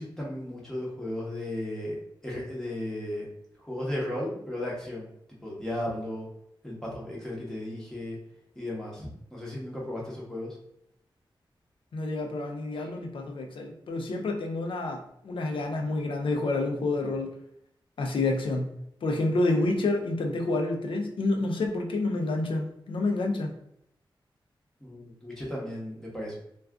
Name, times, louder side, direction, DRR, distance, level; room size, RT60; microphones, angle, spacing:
voice 1, 0.0-2.0 2.2-3.3 3.6-5.1 5.4-6.3 6.6-8.2 8.6-10.6 19.5-19.6 24.8-26.3, left 1 dB, 5° left, -5 dB, 0.9 m, -35 dB
voice 2, 11.9-17.3 18.0-18.8 19.0-23.5, left 2 dB, 75° left, 3 dB, 0.5 m, -28 dB
2.4 x 2.3 x 3.4 m, 0.74 s
wide cardioid pair, 160°, 9 cm